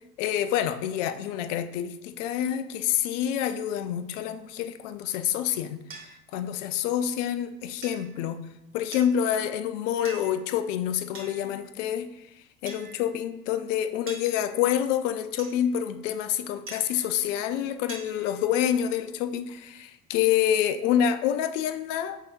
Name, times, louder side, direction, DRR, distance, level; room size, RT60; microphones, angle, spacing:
voice 1, 0.2-5.8 6.3-8.4 8.7-12.3 12.6-22.2, left 10 dB, 65° left, 11 dB, 0.5 m, -27 dB
sound 1, 5.9-6.1 7.8-8.2 8.9-9.4 10.0-10.5 11.1-11.7 12.7-13.3 14.1-14.8 15.4-15.9 16.7-17.3 17.9-18.4, right 4 dB, 30° right, 1.5 m, -45 dB
5.5 x 3.5 x 2.5 m, 0.90 s
figure-of-eight pair, 65°, 41 cm